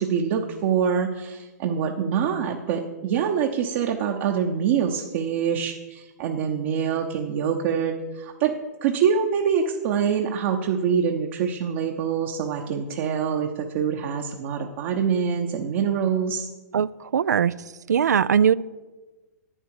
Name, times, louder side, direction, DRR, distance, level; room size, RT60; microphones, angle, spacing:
voice 1, 0.0-8.5 8.8-16.5, right 7 dB, 45° right, 2 dB, 0.9 m, -25 dB
voice 2, 16.7-17.5 17.9-18.5, right 8 dB, 75° right, 19 dB, 0.4 m, -20 dB
11.0 x 9.1 x 4.8 m, 1.2 s
figure-of-eight pair, 115°, 9 cm